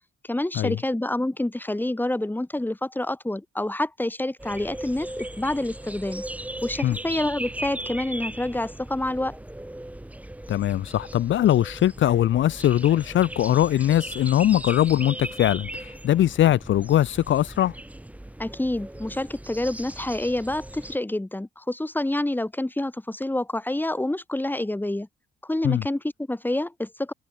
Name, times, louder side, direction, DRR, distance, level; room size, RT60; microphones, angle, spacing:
voice 1, 0.3-6.2 6.6-9.4 18.4-25.1 25.4-27.1, left 1 dB, 10° left, 5.6 m, -28 dB
sound 1, 4.4-21.0, right 1 dB, 5° right, 6.5 m, -38 dB
voice 2, 10.5-17.7 25.6-25.8, left 12 dB, 70° left, 1.8 m, -21 dB
cardioid pair, 90°, 20 cm